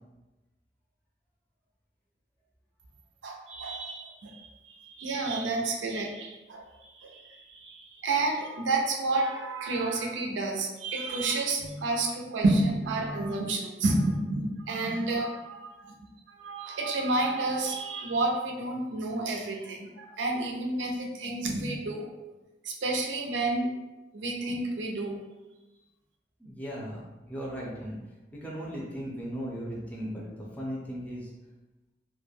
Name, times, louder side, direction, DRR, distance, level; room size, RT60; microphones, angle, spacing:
voice 1, 3.2-6.6 6.9-15.9 16.4-22.1 22.6-23.7 24.1-25.2, right 2 dB, 90° right, 1 dB, 0.5 m, -30 dB
voice 2, 26.4-27.0 27.3-28.0 28.3-31.3, equal, 10° left, -5 dB, 0.5 m, -37 dB
2.3 x 2.1 x 3.2 m, 1.1 s
head